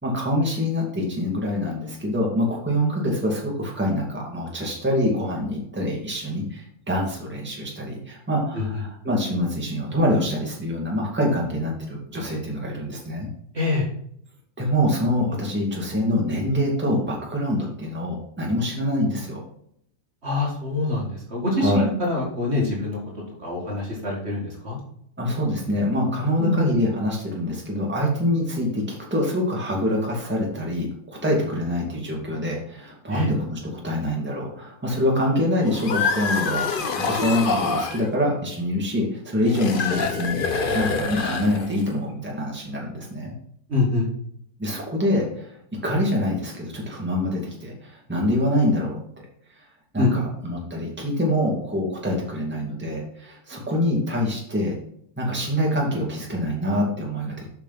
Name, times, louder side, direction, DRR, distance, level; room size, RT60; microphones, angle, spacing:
voice 1, 0.0-13.3 14.6-19.4 21.5-21.9 25.2-40.4 40.7-43.3 44.6-45.6 45.8-49.0 49.5-49.7 49.9-54.8 55.2-57.4, left 1 dB, 5° right, -2 dB, 2.0 m, -25 dB
voice 2, 13.5-13.9 20.2-23.0 23.4-24.8 26.4-26.7 33.1-33.3 43.7-44.1 50.0-50.1, left 3 dB, 40° right, -2 dB, 2.2 m, -25 dB
sound 1, 35.6-38.1 39.5-41.9, left 4 dB, 45° left, 0.7 m, -26 dB
8.4 x 5.8 x 4.1 m, 0.68 s
omnidirectional pair, 1.8 m